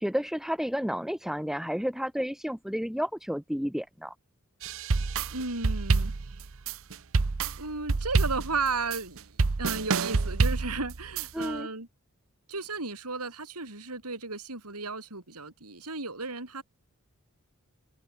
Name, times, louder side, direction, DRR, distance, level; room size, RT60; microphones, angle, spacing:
voice 1, 0.0-4.1 11.3-11.7, equal, ahead, 2.3 m, -31 dB
sound 1, 4.6-11.5, right 4 dB, 65° right, 0.8 m, -27 dB
voice 2, 5.3-6.4 6.7-6.8 7.6-11.9 12.5-16.6, right 3 dB, 90° right, 6.6 m, -34 dB
head